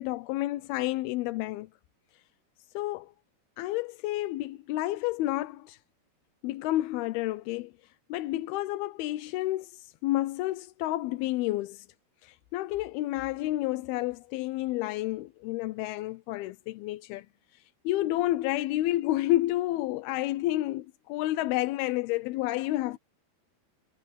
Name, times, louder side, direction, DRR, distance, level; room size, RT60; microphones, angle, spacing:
voice 1, 0.0-1.7 2.8-3.1 3.6-5.8 6.4-7.7 8.1-11.8 12.2-17.3 17.9-23.0, left 16 dB, 80° left, 2.4 m, -30 dB
omnidirectional pair, 4.9 m